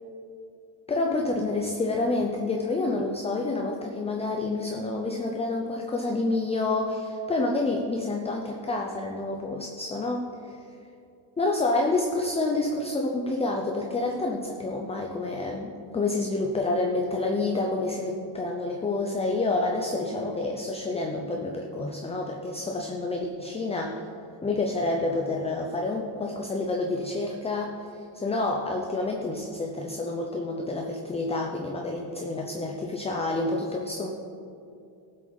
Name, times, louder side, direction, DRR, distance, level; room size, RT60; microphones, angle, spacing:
voice 1, 0.9-10.6 11.4-24.0 24.4-27.7 28.1-34.1, left 2 dB, 15° left, 1 dB, 0.5 m, -28 dB
18.0 x 7.6 x 4.0 m, 2.6 s
cardioid pair, 165°, 47 cm